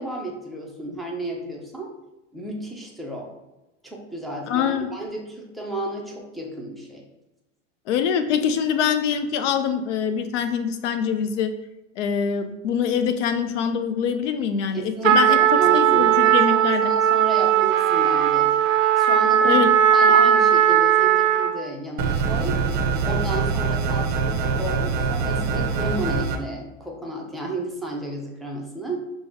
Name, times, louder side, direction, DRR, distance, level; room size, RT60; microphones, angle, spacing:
voice 1, 0.0-1.9 2.3-3.3 3.8-7.0 14.7-18.5 19.0-22.6 23.0-29.0, right 2 dB, ahead, -2 dB, 0.4 m, -32 dB
voice 2, 4.5-4.9 7.9-11.5 12.0-15.4 15.7-16.9 19.4-19.7, left 7 dB, 70° left, 9 dB, 0.6 m, -24 dB
Trumpet, 15.0-21.6, right 9 dB, 85° right, 0.6 m, -18 dB
sound 1, 22.0-26.4, right 5 dB, 45° right, 0.6 m, -24 dB
5.2 x 2.1 x 3.4 m, 0.98 s
hypercardioid pair, 120°, 38 cm